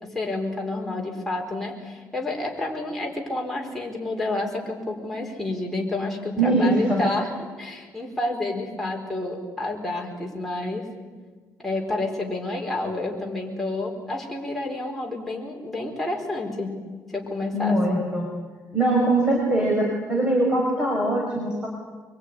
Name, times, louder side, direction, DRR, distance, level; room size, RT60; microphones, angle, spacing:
voice 1, 0.0-7.3 7.6-10.9 11.6-16.8 17.1-18.0, left 2 dB, 5° left, -1 dB, 4.6 m, -29 dB
voice 2, 6.4-7.0 17.5-18.3 18.7-21.7, right 1 dB, 15° right, -2 dB, 5.3 m, -22 dB
24.0 x 23.0 x 9.7 m, 1.4 s
cardioid pair, 145°, 6 cm